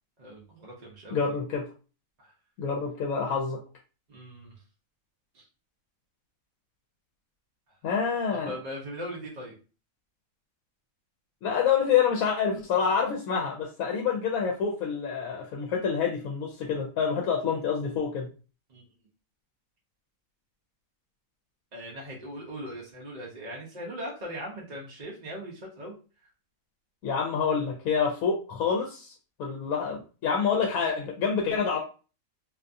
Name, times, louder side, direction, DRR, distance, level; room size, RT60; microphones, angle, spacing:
voice 1, 0.2-1.2 2.2-2.3 4.1-4.5 5.3-5.4 8.3-9.5 18.7-18.8 21.7-26.0, equal, 50° right, -3 dB, 0.5 m, -39 dB
voice 2, 1.1-1.7 2.6-3.6 7.8-8.5 11.4-18.3 27.0-29.1 29.4-31.8, left 6 dB, 75° left, 0 dB, 1.0 m, -27 dB
2.6 x 2.3 x 2.5 m, 0.35 s
omnidirectional pair, 1.5 m